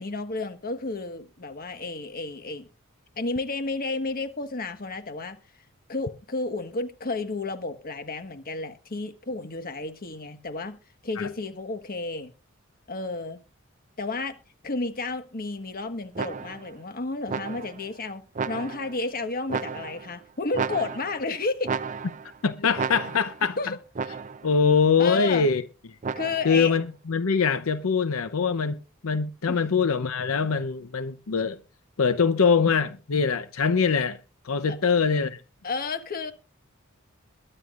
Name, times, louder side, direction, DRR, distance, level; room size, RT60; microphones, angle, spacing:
voice 1, 0.0-2.7 3.2-5.4 5.9-10.8 11.0-12.3 12.9-13.4 14.0-14.4 14.6-21.7 23.6-23.8 25.0-25.5 26.1-26.7 29.5-29.6 34.7-34.8 35.6-36.3, left 3 dB, 45° left, 1.4 m, -32 dB
sound 1, 16.2-16.7 17.3-17.9 18.4-19.0 19.5-20.2 20.5-21.3 21.6-22.4 22.8-23.5 24.0-24.5 26.0-26.6, right 5 dB, 35° right, 0.5 m, -33 dB
voice 2, 22.4-23.6 24.4-25.6 26.4-31.6 32.0-34.2 34.4-35.4, left 5 dB, 80° left, 0.7 m, -23 dB
22.0 x 9.9 x 2.5 m
head